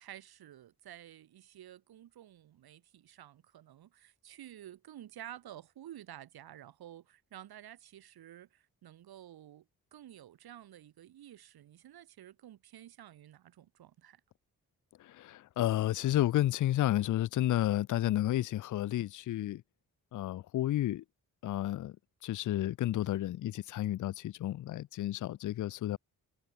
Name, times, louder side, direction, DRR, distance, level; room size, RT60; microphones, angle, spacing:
voice 1, 0.0-14.2, right 12 dB, 90° right, 2.8 m, -51 dB
voice 2, 15.0-19.6 20.1-21.0 21.4-21.9 22.2-26.0, left 13 dB, 55° left, 0.5 m, -31 dB
cardioid pair, 75°, 36 cm